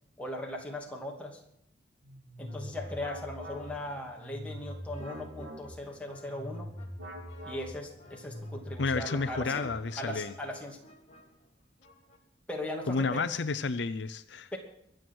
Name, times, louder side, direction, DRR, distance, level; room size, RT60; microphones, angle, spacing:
voice 1, 0.2-1.4 2.4-6.7 7.4-9.7 10.0-10.8 12.5-13.2 14.5-14.6, left 1 dB, 5° left, -1 dB, 2.6 m, -39 dB
sound 1, 2.0-10.1, equal, 75° right, 2.9 m, -43 dB
sound 2, 2.5-12.2, left 1 dB, 35° left, 2.3 m, -56 dB
voice 2, 8.8-10.3 12.9-14.5, left 4 dB, 65° left, 12 dB, 0.6 m, -31 dB
23.5 x 7.9 x 6.2 m, 0.72 s
head